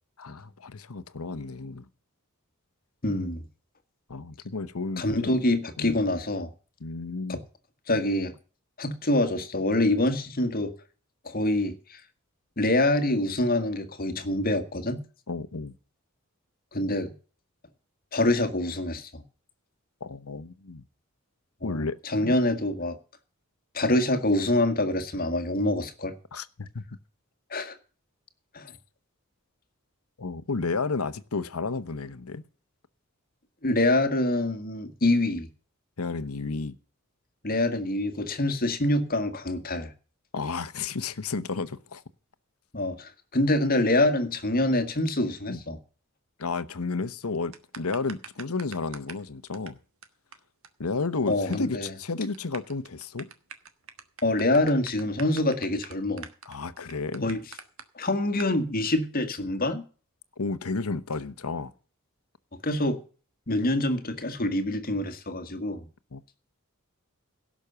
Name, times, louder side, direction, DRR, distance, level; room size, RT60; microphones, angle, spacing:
voice 1, 0.2-1.9 4.1-5.4 5.8-6.0 6.8-7.4 15.3-15.7 20.0-20.8 21.6-22.0 22.2-22.4 26.3-26.8 30.2-32.4 36.0-36.8 40.3-42.0 45.5-45.6 46.4-49.8 50.8-53.3 56.5-57.3 60.4-61.7 66.1-66.2, left 4 dB, 85° left, 1.0 m, -32 dB
voice 2, 3.0-3.5 5.0-6.5 7.3-7.4 7.9-8.3 8.8-10.7 11.3-12.0 12.6-15.0 16.7-17.1 18.1-19.2 21.6-23.0 23.7-26.1 27.5-27.8 28.5-28.7 33.6-35.5 37.4-39.9 42.7-45.8 51.3-51.9 54.2-56.3 57.2-57.4 58.0-59.8 62.6-63.0 63.5-65.9, left 1 dB, 45° left, 1.8 m, -25 dB
sound 1, 47.5-49.3 49.5-49.7 50.0-50.1 50.3-50.4 50.6-50.7 51.0-51.6 51.9-52.0 52.3-57.8 58.4-58.5, right 6 dB, 70° right, 1.4 m, -43 dB
17.0 x 6.3 x 6.9 m
head